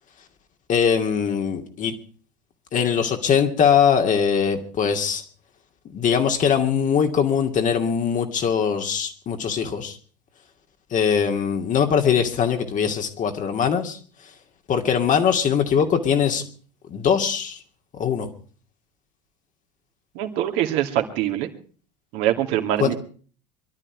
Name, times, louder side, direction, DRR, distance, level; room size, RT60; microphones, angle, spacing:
voice 1, 0.7-1.9 2.7-5.2 5.8-10.0 10.9-14.0 14.7-16.4 16.9-17.6 17.9-18.3 22.8-22.9, left 7 dB, 40° left, 5 dB, 2.5 m, -21 dB
voice 2, 20.1-21.5 22.1-22.9, right 12 dB, 55° right, 5 dB, 2.5 m, -23 dB
23.5 x 12.5 x 4.7 m, 0.42 s
figure-of-eight pair, 75°, 21 cm